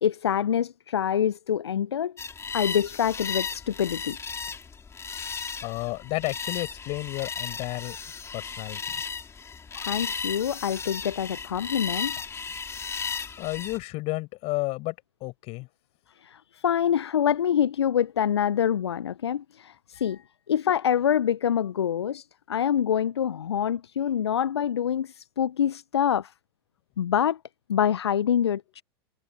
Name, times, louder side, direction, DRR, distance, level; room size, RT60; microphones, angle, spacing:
voice 1, 0.0-2.1 2.5-4.2 9.7-12.2 16.2-26.3 27.0-27.4 27.7-28.8, left 9 dB, 80° left, 0.7 m, -26 dB
sound 1, 2.2-13.8, left 6 dB, 20° left, 3.4 m, -35 dB
voice 2, 5.6-8.0 8.3-9.0 13.4-14.9 15.2-15.7, left 23 dB, 50° left, 7.9 m, -32 dB
figure-of-eight pair, 85°, 14 cm